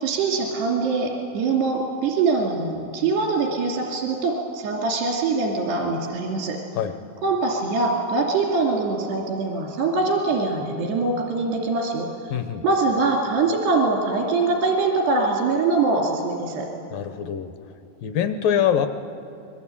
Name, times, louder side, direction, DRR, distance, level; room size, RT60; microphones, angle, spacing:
voice 1, 0.0-6.6 7.2-12.1 12.6-16.7, right 3 dB, 85° right, 1 dB, 4.8 m, -23 dB
voice 2, 12.3-12.6 16.9-17.5 18.0-18.9, left 9 dB, 75° left, 9 dB, 2.3 m, -23 dB
26.0 x 22.5 x 8.6 m, 2.8 s
omnidirectional pair, 4.7 m